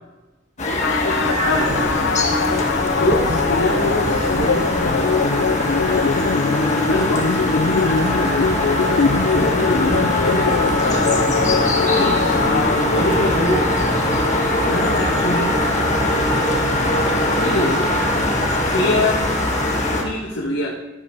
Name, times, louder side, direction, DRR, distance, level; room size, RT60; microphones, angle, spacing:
voice 1, 0.6-2.0 2.8-5.1 6.9-8.7 9.3-11.3 12.0-13.7 14.6-15.9 17.4-17.9 18.6-19.3 20.0-20.7, left 1 dB, 85° left, -3 dB, 1.8 m, -25 dB
sound 1, 0.6-20.0, left 1 dB, 40° left, 1.6 m, -21 dB
sound 2, 0.8-13.4, left 5 dB, 65° left, 0.4 m, -22 dB
sound 3, 1.2-19.6, right 2 dB, 40° right, 0.6 m, -32 dB
14.5 x 8.5 x 3.9 m, 1.1 s
head